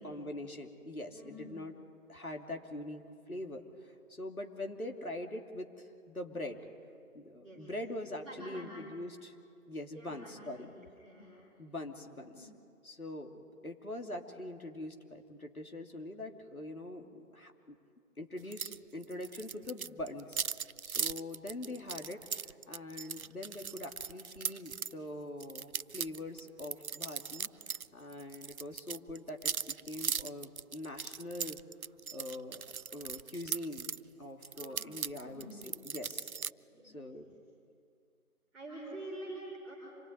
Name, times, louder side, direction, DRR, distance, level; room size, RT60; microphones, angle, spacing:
voice 1, 0.0-1.7 2.1-6.6 7.1-9.4 9.7-10.7 11.6-12.5 12.8-17.8 18.2-20.4 20.8-31.6 32.1-32.6 32.9-36.3 36.8-37.2, left 1 dB, 70° left, 3 dB, 2.9 m, -43 dB
voice 2, 1.1-1.6 7.4-7.6 8.2-8.8 9.9-10.7 11.0-11.3 12.2-12.4 34.5-34.8 35.2-35.6 36.6-37.2 38.5-39.7, right 1 dB, ahead, -20 dB, 2.2 m, -47 dB
sound 1, 18.5-18.8 19.0-24.9 25.4-27.9 28.1-34.0 34.4-36.5, right 6 dB, 70° right, 0.6 m, -39 dB
26.5 x 19.5 x 9.6 m, 2.4 s
figure-of-eight pair, 165°, 45 cm